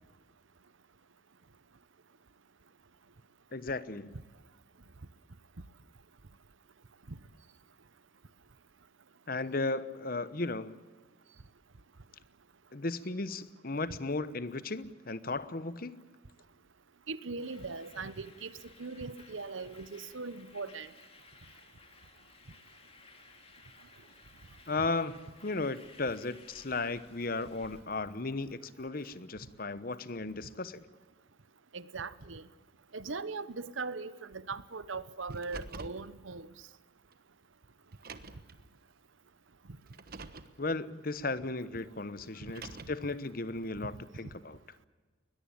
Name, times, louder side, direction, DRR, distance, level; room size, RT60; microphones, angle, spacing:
voice 1, 3.5-4.1 9.3-10.8 12.7-16.0 24.7-30.9 40.6-44.6, left 3 dB, 45° left, 15 dB, 1.0 m, -35 dB
voice 2, 17.1-18.5 18.8-20.9 31.7-32.4 32.9-36.5, right 4 dB, 80° right, 16 dB, 1.0 m, -40 dB
sound 1, 17.4-27.8, left 4 dB, 30° left, 2.8 m, -58 dB
Car, 35.3-36.0 37.1-37.2 37.9-38.5 39.9-40.5 42.3-43.1, right 3 dB, 50° right, 1.2 m, -46 dB
21.0 x 21.0 x 8.7 m, 1.4 s
head